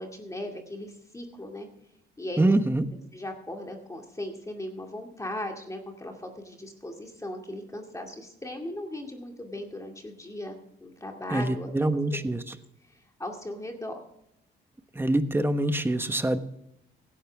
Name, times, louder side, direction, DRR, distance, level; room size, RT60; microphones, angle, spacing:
voice 1, 0.0-1.7 2.2-2.6 3.1-11.7 13.2-14.0, left 1 dB, 15° left, 2 dB, 2.2 m, -37 dB
voice 2, 2.4-2.9 11.3-12.5 14.9-16.4, right 1 dB, 10° right, 9 dB, 1.2 m, -25 dB
16.5 x 11.5 x 3.5 m, 0.78 s
cardioid pair, 90°, 20 cm